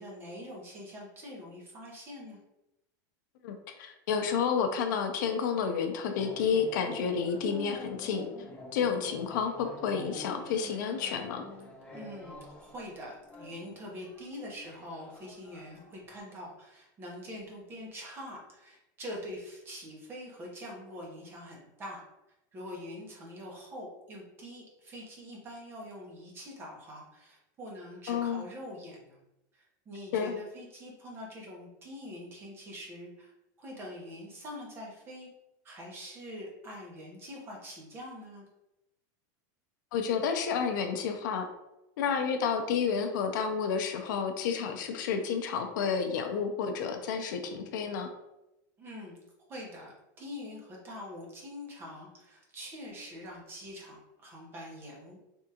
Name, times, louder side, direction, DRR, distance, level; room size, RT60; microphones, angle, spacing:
voice 1, 0.0-2.4 11.9-22.0 22.5-29.2 29.5-33.3 33.6-35.3 35.6-38.5 48.8-49.2 49.5-55.2, left 1 dB, 20° right, -2 dB, 0.8 m, -44 dB
voice 2, 3.4-8.3 8.7-11.4 28.1-28.4 30.1-30.3 39.9-41.5 42.0-48.1, left 6 dB, 70° left, 6 dB, 0.5 m, -30 dB
sound 1, 6.1-16.2, left 2 dB, 10° left, 0.3 m, -47 dB
3.4 x 2.4 x 2.8 m, 0.90 s
supercardioid pair, 160°, 11 cm